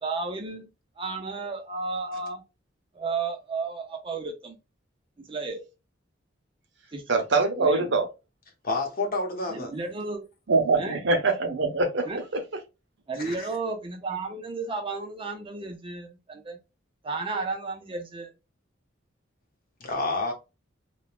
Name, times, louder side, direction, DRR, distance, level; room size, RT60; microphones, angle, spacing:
voice 1, 0.0-0.7 1.0-2.4 2.9-4.6 5.2-5.6 6.9-7.0 7.6-7.9 9.5-10.2 10.8-11.0 12.1-12.2 13.1-16.6 17.0-18.3, right 3 dB, 25° right, 0.5 m, -33 dB
voice 2, 7.1-8.1 10.5-12.1, right 3 dB, 65° right, 0.7 m, -23 dB
voice 3, 8.6-9.7 13.2-13.5 19.8-20.3, left 3 dB, 50° left, 0.8 m, -29 dB
3.0 x 2.2 x 2.3 m
head